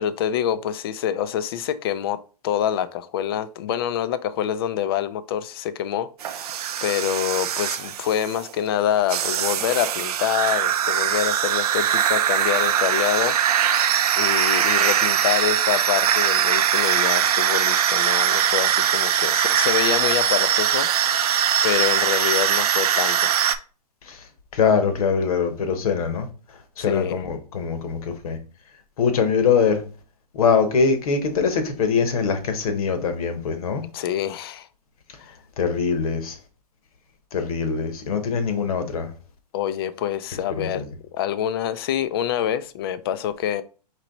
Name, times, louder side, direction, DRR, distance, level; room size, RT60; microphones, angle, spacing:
voice 1, 0.0-2.2 2.4-13.4 14.2-20.9 21.1-23.4 26.8-27.2 33.9-34.7 35.2-35.3 39.5-40.8 41.1-43.6, left 10 dB, 35° left, 0.4 m, -26 dB
sound 1, 6.2-8.5 9.1-23.6, right 9 dB, 65° right, 0.5 m, -21 dB
voice 2, 24.5-26.3 26.8-28.4 29.0-29.8 30.3-33.8 35.6-36.4 37.3-39.1 40.5-40.8, left 5 dB, 60° left, 1.1 m, -23 dB
4.5 x 2.9 x 3.9 m
hypercardioid pair, 150°, 21 cm